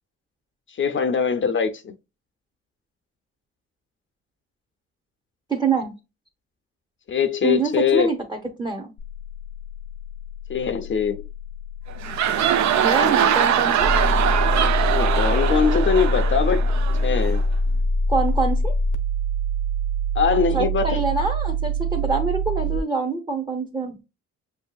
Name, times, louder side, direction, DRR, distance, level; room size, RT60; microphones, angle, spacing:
voice 1, 0.8-1.9 7.1-8.1 10.5-11.2 14.9-16.6 17.0-17.4 20.2-21.0, left 6 dB, 40° left, 0.5 m, -22 dB
voice 2, 5.5-6.0 7.4-8.9 12.8-13.9 18.1-18.7 20.5-24.0, right 3 dB, 15° right, 0.7 m, -25 dB
sound 1, 9.0-22.8, equal, 80° left, 0.8 m, -25 dB
sound 2, 11.9-17.5, right 9 dB, 70° right, 0.6 m, -22 dB
6.5 x 2.7 x 2.2 m
cardioid pair, 90°, 30 cm